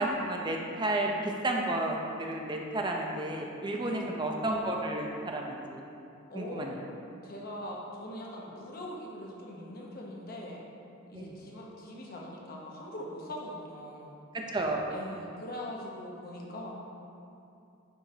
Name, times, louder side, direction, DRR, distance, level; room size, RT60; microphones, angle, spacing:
voice 1, 0.0-5.8 6.3-6.7 11.1-11.3 14.5-14.8, right 1 dB, 20° right, 0 dB, 0.6 m, -32 dB
voice 2, 3.8-4.2 6.3-6.7 7.2-10.6 11.1-14.2 14.9-16.7, left 1 dB, 45° left, -3 dB, 1.1 m, -42 dB
10.0 x 5.6 x 2.8 m, 2.7 s
head